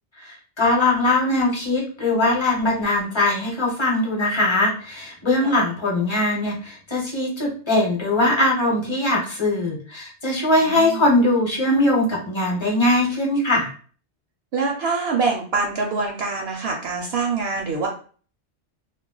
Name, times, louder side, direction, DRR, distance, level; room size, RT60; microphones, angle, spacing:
voice 1, 0.2-13.7, left 2 dB, 25° left, -2 dB, 0.8 m, -21 dB
voice 2, 10.6-11.1 14.5-17.9, right 4 dB, 70° right, 1 dB, 0.7 m, -25 dB
2.2 x 2.1 x 3.8 m, 0.42 s
omnidirectional pair, 1.2 m